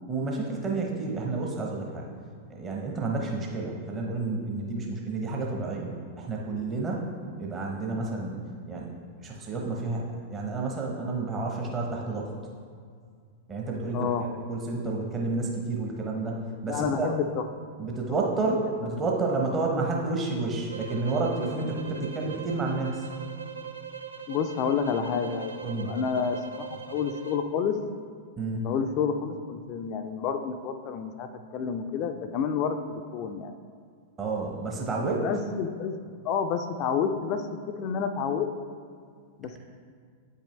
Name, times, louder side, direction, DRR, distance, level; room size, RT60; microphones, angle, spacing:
voice 1, 0.1-2.1 2.5-7.1 7.4-8.4 8.7-12.3 13.5-17.1 17.8-23.1 25.6-26.0 28.4-28.7 34.2-35.3, right 3 dB, 25° right, -1 dB, 0.9 m, -30 dB
voice 2, 13.9-14.3 16.7-17.4 18.4-18.6 24.3-27.8 28.6-33.5 35.2-36.0 36.2-37.4 37.8-38.5 39.4-39.6, left 6 dB, 40° left, 7 dB, 0.4 m, -29 dB
sound 1, 20.7-27.5, right 6 dB, 75° right, 0.4 m, -41 dB
8.4 x 5.4 x 3.2 m, 2.1 s
figure-of-eight pair, 95°, 0 cm